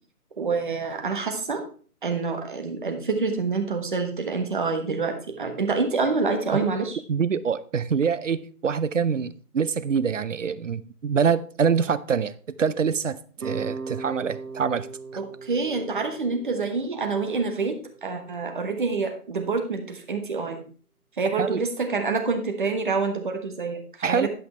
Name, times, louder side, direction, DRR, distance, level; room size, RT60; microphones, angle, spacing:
voice 1, 0.4-1.6 2.0-7.0 15.2-20.6 21.2-24.3, right 4 dB, 35° right, 1.2 m, -27 dB
voice 2, 7.1-14.9 21.4-21.6 24.0-24.3, right 6 dB, 55° right, 0.6 m, -25 dB
sound 1, 13.4-18.5, right 4 dB, 75° right, 1.2 m, -39 dB
10.5 x 5.7 x 4.2 m
hypercardioid pair, 170°, 45 cm